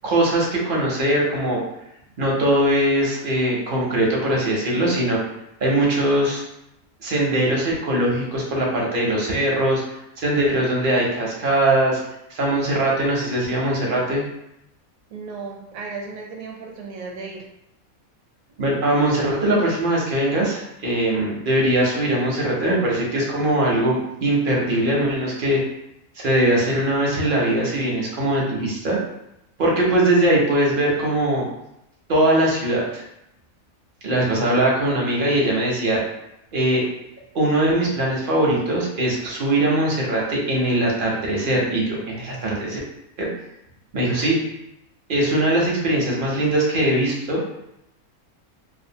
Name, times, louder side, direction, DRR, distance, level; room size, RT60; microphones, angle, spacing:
voice 1, 0.0-1.6 2.2-5.2 5.6-6.4 7.0-9.8 10.2-12.0 12.3-14.2 18.6-25.6 26.2-29.0 29.6-31.5 32.1-33.0 34.0-36.0 36.5-36.8 37.3-42.8 43.2-43.3 43.9-44.4 45.1-47.4, right 1 dB, 55° right, -3 dB, 0.6 m, -21 dB
voice 2, 15.1-17.4, right 4 dB, 80° right, 0 dB, 1.0 m, -35 dB
2.5 x 2.3 x 2.7 m, 0.83 s
omnidirectional pair, 1.5 m